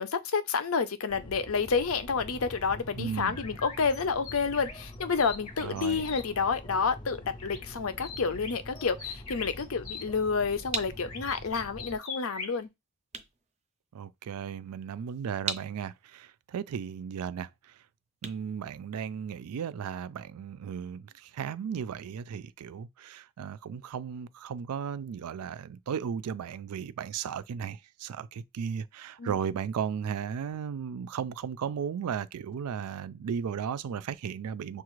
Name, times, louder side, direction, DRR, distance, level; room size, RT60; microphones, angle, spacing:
voice 1, 0.0-12.7 29.2-29.3, left 5 dB, 65° left, 0.6 m, -29 dB
sound 1, 1.1-12.0, left 1 dB, 20° left, 0.5 m, -45 dB
voice 2, 3.0-3.4 5.6-6.1 13.9-17.7 18.2-34.8, right 7 dB, 80° right, 0.4 m, -35 dB
sound 2, 3.3-6.2 7.4-7.7 8.0-10.1 11.0-12.6, left 5 dB, 90° left, 1.2 m, -42 dB
sound 3, 10.1-19.5, right 5 dB, 30° right, 0.5 m, -42 dB
6.5 x 2.4 x 3.1 m
head